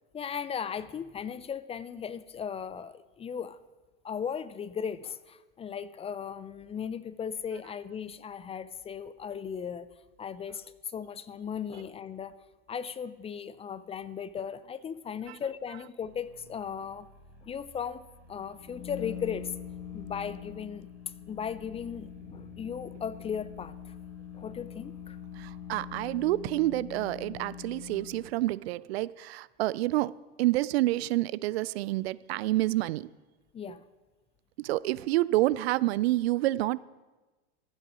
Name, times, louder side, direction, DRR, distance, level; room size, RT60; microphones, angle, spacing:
voice 1, 0.1-3.6 4.0-9.9 10.2-12.3 12.7-17.1 17.4-18.0 18.3-19.5 19.9-20.9 21.3-23.9 24.3-25.2 33.5-33.8, left 7 dB, 20° left, 15 dB, 0.4 m, -37 dB
sound 1, 16.0-26.0, right 1 dB, 5° right, 3.4 m, -56 dB
sound 2, 18.4-28.3, left 9 dB, 45° left, 1.2 m, -43 dB
voice 2, 25.4-30.1 30.4-33.1 34.6-36.8, right 17 dB, 65° right, 20 dB, 0.5 m, -28 dB
13.5 x 7.8 x 6.1 m, 1.2 s
hypercardioid pair, 95°, 33 cm